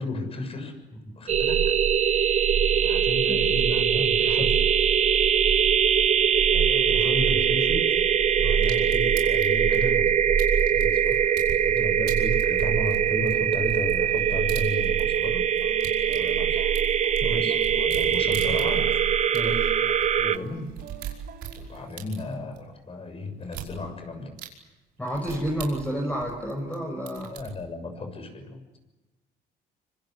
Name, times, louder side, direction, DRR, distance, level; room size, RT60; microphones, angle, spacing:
voice 1, 0.0-0.7 1.2-1.7 2.7-4.6 6.5-8.0 8.4-10.3 10.7-15.5 16.1-16.7 17.2-19.0 20.2-20.7 21.6-24.3 27.3-28.7, left 2 dB, 35° left, 6 dB, 6.9 m, -34 dB
sound 1, 1.3-20.4, right 8 dB, 40° right, 0.9 m, -22 dB
sound 2, 8.6-11.6 12.1-15.3 15.5-19.0 19.3-19.4 19.6-19.7 20.0-20.1 20.5-22.6 23.4-23.7 24.4-24.5 25.1-26.7 27.1-27.5, right 11 dB, 90° right, 5.4 m, -40 dB
sound 3, 9.7-9.8 10.6-11.8 12.1-12.4 12.7-14.3 14.6-21.9, right 5 dB, 65° right, 5.1 m, -50 dB
voice 2, 17.2-17.5 19.3-19.7 25.0-27.3, equal, 10° left, 1 dB, 5.6 m, -30 dB
26.0 x 25.5 x 8.1 m, 1.1 s
cardioid pair, 110°, 17 cm